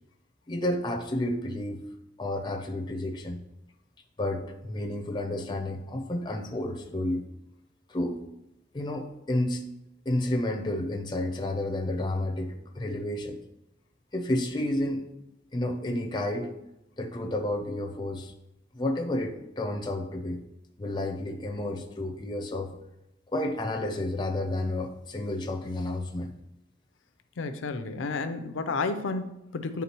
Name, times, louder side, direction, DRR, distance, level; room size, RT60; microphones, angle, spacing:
voice 1, 0.5-1.8 2.2-3.4 4.2-7.3 7.9-8.2 8.7-9.6 10.1-13.4 14.1-15.1 15.5-16.5 17.0-18.3 18.7-20.4 20.8-22.8 23.3-26.3, left 1 dB, 25° left, 4 dB, 0.6 m, -31 dB
voice 2, 27.4-29.8, left 3 dB, 85° left, 9 dB, 0.5 m, -31 dB
9.4 x 3.6 x 3.0 m, 0.86 s
head